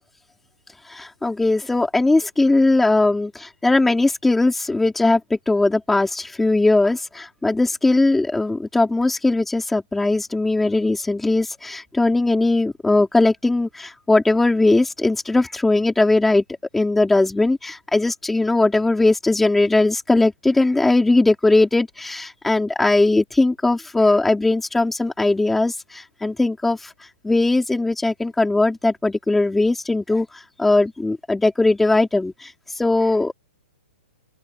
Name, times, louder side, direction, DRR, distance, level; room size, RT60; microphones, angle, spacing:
voice 1, 0.9-16.4 16.7-26.9 27.2-33.3, left 2 dB, 5° left, 4.1 m, -19 dB
open air
hypercardioid pair, 175°, 6 cm